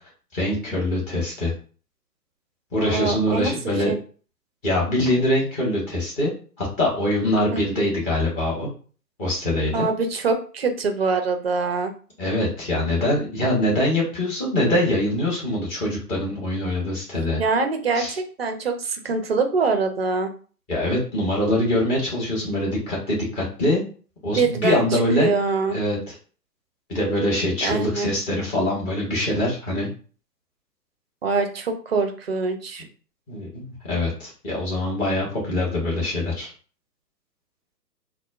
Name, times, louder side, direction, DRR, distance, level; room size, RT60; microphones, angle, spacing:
voice 1, 0.3-1.5 2.7-3.9 4.6-6.3 6.6-8.7 9.2-9.9 12.2-17.4 17.9-18.2 20.7-23.8 24.2-25.4 25.7-26.2 26.9-29.9 33.3-36.5, left 1 dB, 15° left, -4 dB, 1.0 m, -23 dB
voice 2, 2.8-3.5 3.9-4.0 7.5-7.6 9.7-11.9 17.4-20.3 24.4-24.8 25.2-25.7 27.6-28.1 31.2-32.8, right 4 dB, 40° right, 6 dB, 0.5 m, -24 dB
4.1 x 2.2 x 2.3 m, 0.40 s
figure-of-eight pair, 125°, 49 cm